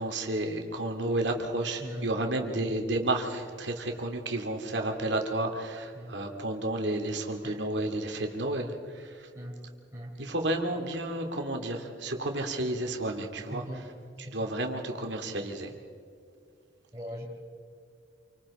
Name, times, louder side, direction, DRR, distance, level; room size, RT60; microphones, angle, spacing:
voice 1, 0.0-9.3 10.2-13.6 14.2-15.7, right 1 dB, 65° right, 3 dB, 2.6 m, -31 dB
voice 2, 1.8-2.7 5.9-6.2 7.4-7.6 9.3-9.6 9.9-10.1 13.5-13.9 14.2-14.5 16.9-17.2, equal, 15° right, -5 dB, 4.1 m, -41 dB
28.0 x 25.0 x 4.3 m, 2.3 s
head